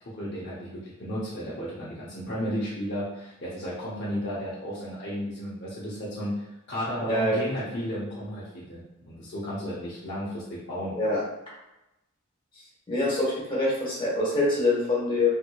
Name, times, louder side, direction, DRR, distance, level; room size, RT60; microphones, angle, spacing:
voice 1, 0.1-8.8 9.1-10.9, equal, 50° left, -8 dB, 0.7 m, -33 dB
voice 2, 12.9-15.3, left 2 dB, 20° left, -7 dB, 1.2 m, -25 dB
3.4 x 3.0 x 2.3 m, 0.94 s
head